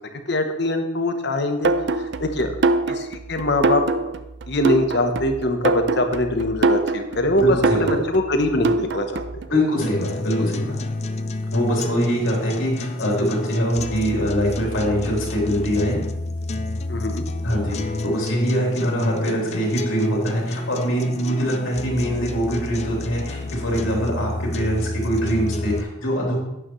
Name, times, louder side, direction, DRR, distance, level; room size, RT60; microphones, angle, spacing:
voice 1, 0.3-2.5 2.9-3.8 4.5-9.2 16.9-17.2, left 1 dB, 50° left, 6 dB, 0.9 m, -23 dB
sound 1, 1.6-9.5, right 3 dB, 55° right, 0.4 m, -23 dB
voice 2, 7.4-8.0 9.5-10.8 11.5-16.0 17.4-26.4, equal, 70° left, -2 dB, 3.3 m, -23 dB
sound 2, 9.8-25.8, left 2 dB, 30° left, 0.4 m, -29 dB
12.0 x 9.1 x 3.1 m, 0.90 s
head